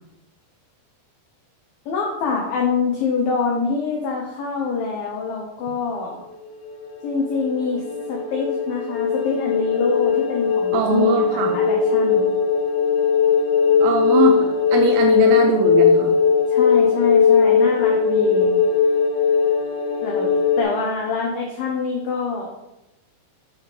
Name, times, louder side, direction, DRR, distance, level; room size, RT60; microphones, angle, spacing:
voice 1, 1.9-6.2 7.0-12.3 16.5-18.5 20.0-20.3 20.6-22.5, left 4 dB, 85° left, 0 dB, 2.0 m, -25 dB
sound 1, 6.5-20.6, left 6 dB, 70° left, 2.5 m, -19 dB
voice 2, 10.7-11.5 13.8-14.4 14.7-16.1, right 5 dB, 80° right, 2 dB, 2.6 m, -21 dB
9.3 x 5.1 x 3.4 m, 0.94 s
omnidirectional pair, 5.5 m